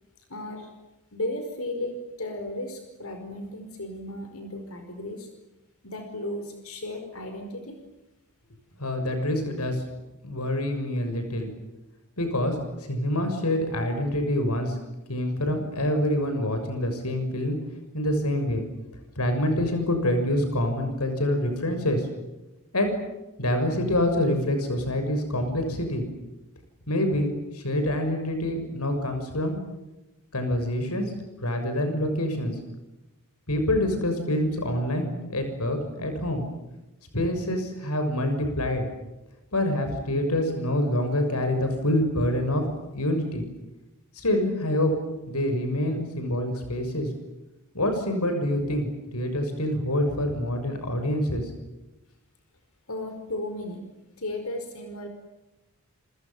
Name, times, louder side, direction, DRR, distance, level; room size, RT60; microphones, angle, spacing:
voice 1, 0.3-0.7 1.1-5.3 5.8-7.8 52.9-53.8 54.2-55.1, left 1 dB, 70° left, 5 dB, 5.2 m, -35 dB
voice 2, 8.8-9.8 10.2-11.5 12.2-12.6 12.9-14.8 15.1-17.6 17.9-18.6 19.1-22.1 22.7-22.9 23.4-26.0 26.9-29.6 30.3-31.1 31.4-32.6 33.5-36.4 37.1-38.9 39.5-42.6 42.9-43.4 44.1-44.9 45.3-47.1 47.7-51.5, left 1 dB, 90° left, 6 dB, 6.7 m, -26 dB
29.5 x 27.0 x 7.4 m, 0.99 s
head